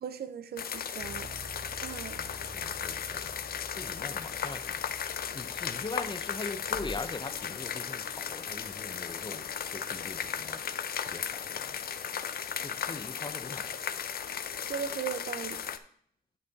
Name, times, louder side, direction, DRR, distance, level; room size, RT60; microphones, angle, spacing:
voice 1, 0.0-1.3 1.8-2.2 14.7-15.6, right 8 dB, 80° right, 12 dB, 0.6 m, -37 dB
sound 1, 0.6-15.8, left 8 dB, 70° left, 0.5 m, -36 dB
sound 2, 1.0-10.7, right 2 dB, 30° right, 1.2 m, -52 dB
voice 2, 2.0-3.4 3.7-11.8 12.6-13.8, left 3 dB, 30° left, 10 dB, 0.6 m, -42 dB
sound 3, 6.7-11.4, left 1 dB, 45° left, 1.3 m, -52 dB
9.3 x 5.6 x 4.0 m, 0.63 s
wide cardioid pair, 130°, 16 cm